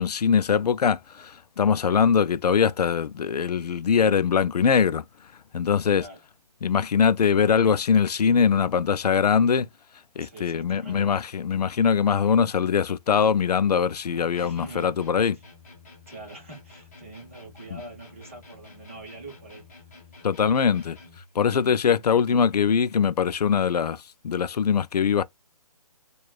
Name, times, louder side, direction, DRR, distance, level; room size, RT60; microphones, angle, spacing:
voice 1, 0.0-5.0 5.5-6.0 6.6-9.7 10.2-15.4 17.7-17.8 20.2-21.0 21.4-25.2, left 6 dB, 80° left, 0.4 m, -22 dB
voice 2, 10.2-11.1 14.3-14.9 16.1-19.6, right 2 dB, 20° right, 0.9 m, -44 dB
sound 1, 14.3-21.3, left 3 dB, 25° left, 1.0 m, -50 dB
4.8 x 2.3 x 2.3 m
hypercardioid pair, 180°, 20 cm